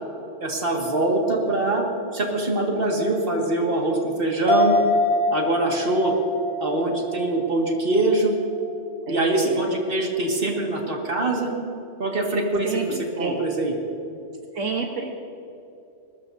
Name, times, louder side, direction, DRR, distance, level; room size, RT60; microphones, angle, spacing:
voice 1, 0.4-1.8 2.1-4.7 5.3-6.1 6.6-8.3 9.1-11.5 12.0-13.7, right 2 dB, 50° right, 0 dB, 2.3 m, -23 dB
sound 1, 4.5-8.2 8.5-8.6, left 2 dB, 25° right, 4.8 m, -24 dB
voice 2, 9.1-9.6 12.6-13.4 14.5-15.1, right 5 dB, 80° right, 1 dB, 1.6 m, -30 dB
22.5 x 19.5 x 2.8 m, 2.9 s
omnidirectional pair, 1.3 m